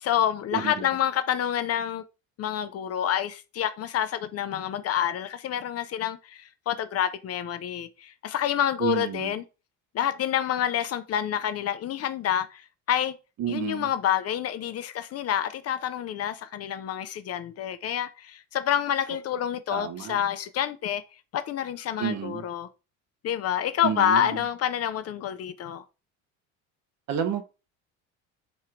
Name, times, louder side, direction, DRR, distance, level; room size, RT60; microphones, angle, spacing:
voice 1, 0.0-2.0 2.4-9.4 9.9-13.1 13.5-21.0 21.3-22.7 23.2-25.8, left 10 dB, 40° left, 0.5 m, -28 dB
voice 2, 0.5-0.8 8.8-9.3 13.4-13.9 19.7-20.2 22.0-22.5 23.8-24.3 27.1-27.5, right 8 dB, 50° right, 0.9 m, -30 dB
3.7 x 3.1 x 4.4 m
supercardioid pair, 105°, 36 cm